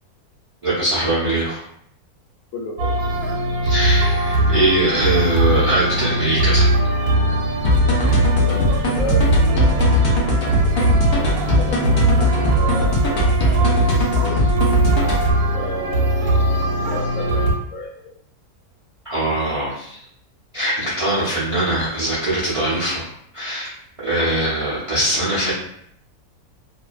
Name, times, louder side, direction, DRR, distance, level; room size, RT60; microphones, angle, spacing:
voice 1, 0.6-1.6 3.6-6.6 19.0-20.0 20.5-23.0 23.3-23.7 24.0-25.5, right 1 dB, 40° right, -9 dB, 0.4 m, -21 dB
voice 2, 2.5-3.0 7.8-10.5 10.8-10.9 11.5-13.5 14.2-14.4 15.5-17.5 17.7-18.1, left 1 dB, 65° left, -3 dB, 1.0 m, -33 dB
sound 1, 2.8-17.5, right 1 dB, 90° right, 1.2 m, -20 dB
sound 2, 7.6-15.3, left 2 dB, 85° left, 0.5 m, -20 dB
2.5 x 2.1 x 2.3 m, 0.68 s
omnidirectional pair, 1.6 m